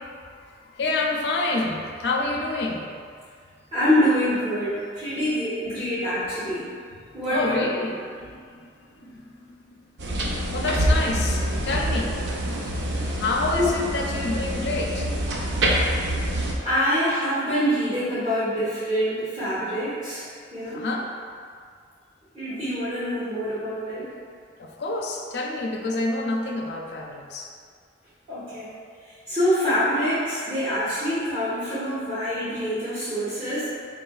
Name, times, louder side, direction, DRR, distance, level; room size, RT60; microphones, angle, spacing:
voice 1, 0.3-2.9 7.3-9.7 10.5-12.2 13.0-15.1 20.6-21.1 24.6-27.5, left 2 dB, 65° left, 0 dB, 0.4 m, -28 dB
voice 2, 3.7-6.7 7.1-7.6 13.5-13.7 16.6-20.3 20.5-20.8 22.3-24.1 28.3-28.7 29.3-33.7, equal, 30° right, -14 dB, 0.9 m, -25 dB
sound 1, 10.0-16.5, right 1 dB, 75° right, 0.5 m, -26 dB
4.2 x 3.2 x 2.3 m, 2.1 s
head